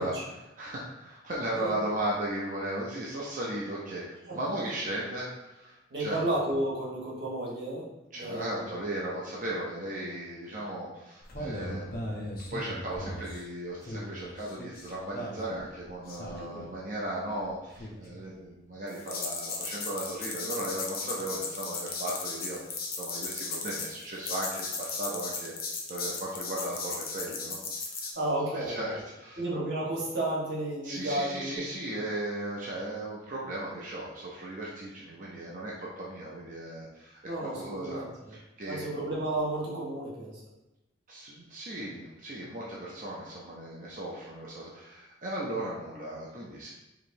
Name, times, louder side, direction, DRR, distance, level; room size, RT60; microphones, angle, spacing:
voice 1, 0.0-6.2 8.1-12.2 12.5-25.5 25.9-29.4 30.8-38.0 38.3-38.8 41.1-46.7, right 1 dB, 45° right, -5 dB, 0.6 m, -36 dB
voice 2, 4.3-4.7 5.9-7.9 8.2-8.7 16.4-16.6 28.1-29.0 29.4-31.6 37.2-38.3 38.7-40.4, right 1 dB, 60° right, -5 dB, 1.3 m, -32 dB
sound 1, 11.2-13.5 13.8-16.8 17.7-18.3 18.9-28.1, left 3 dB, 50° left, 0.6 m, -37 dB
4.8 x 3.0 x 2.7 m, 0.98 s
head